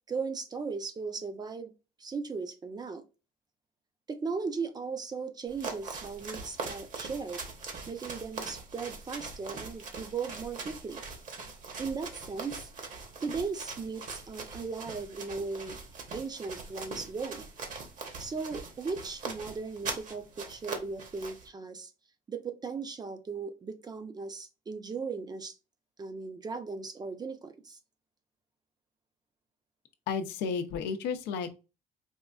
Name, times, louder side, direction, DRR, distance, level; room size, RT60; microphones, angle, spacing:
voice 1, 0.1-1.7 2.0-3.0 4.1-7.4 7.9-11.0 11.8-12.7 13.2-15.8 16.1-17.4 18.2-21.9 22.3-25.5 26.0-27.8, right 4 dB, 25° right, 0.5 m, -37 dB
sound 1, 5.5-21.5, right 4 dB, 50° right, 0.9 m, -42 dB
voice 2, 30.1-31.6, left 6 dB, 90° left, 0.5 m, -32 dB
4.3 x 2.4 x 2.2 m
cardioid pair, 110°, 17 cm